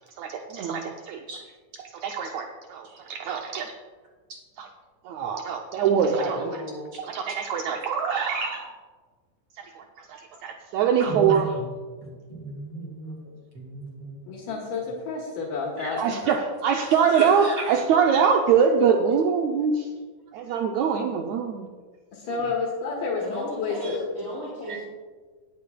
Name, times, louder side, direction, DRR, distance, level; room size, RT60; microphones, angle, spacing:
voice 1, 0.2-1.2 2.0-3.7 4.6-4.7 5.0-6.6 7.0-8.7 9.6-10.1 10.4-11.5 16.0-19.9 20.3-21.7, right 6 dB, 80° right, 3 dB, 1.6 m, -24 dB
voice 2, 6.2-6.9 23.2-24.9, equal, 25° left, -6 dB, 2.7 m, -36 dB
voice 3, 11.1-11.7 12.0-14.2 15.8-15.9 16.2-16.4 17.1-17.7 23.8-24.0 24.7-24.8, right 2 dB, 45° right, -1 dB, 2.7 m, -35 dB
voice 4, 14.2-16.2 22.1-24.1, left 4 dB, 75° left, -3 dB, 3.0 m, -30 dB
19.5 x 8.5 x 2.3 m, 1.5 s
omnidirectional pair, 3.9 m